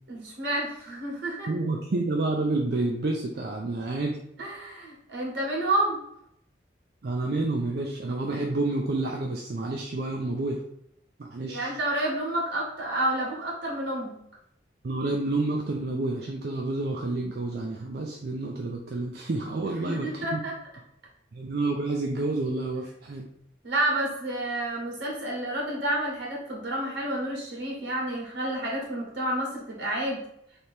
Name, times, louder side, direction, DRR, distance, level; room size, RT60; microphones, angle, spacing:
voice 1, 0.1-1.5 4.4-6.0 11.5-14.2 19.8-20.5 23.6-30.2, right 1 dB, 80° right, -3 dB, 1.6 m, -29 dB
voice 2, 1.5-4.2 7.0-10.6 11.2-11.8 14.8-20.4 21.3-23.3, right 2 dB, 55° right, 0 dB, 0.4 m, -29 dB
3.3 x 2.9 x 4.3 m, 0.75 s
head